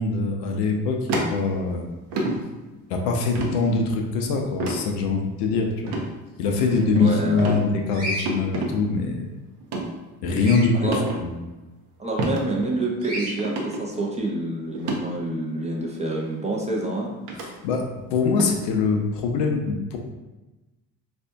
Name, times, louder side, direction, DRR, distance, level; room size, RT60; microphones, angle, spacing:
voice 1, 0.0-1.9 2.9-6.1 6.4-9.3 10.2-11.3 17.4-20.0, left 4 dB, 60° left, 2 dB, 0.6 m, -23 dB
sound 1, 1.1-1.8 2.1-2.4 3.4-3.6 4.6-4.8 5.8-6.1 6.6-7.0 7.4-7.6 8.3-8.7 9.6-9.9 10.9-11.2 12.2-12.4 12.8-12.9 13.4-13.8 14.7-15.0 16.1-16.2 17.3-17.5 18.4-18.6, right 2 dB, 60° right, 0.8 m, -27 dB
voice 2, 6.5-7.6 10.8-11.0 12.0-17.1, right 2 dB, 15° right, -2 dB, 0.7 m, -28 dB
Bird vocalization bird call bird song, 7.9-8.3 10.3-10.7 13.0-13.3, equal, 80° right, 1.2 m, -30 dB
4.2 x 2.5 x 2.3 m, 1.1 s
hypercardioid pair, 60°, 48 cm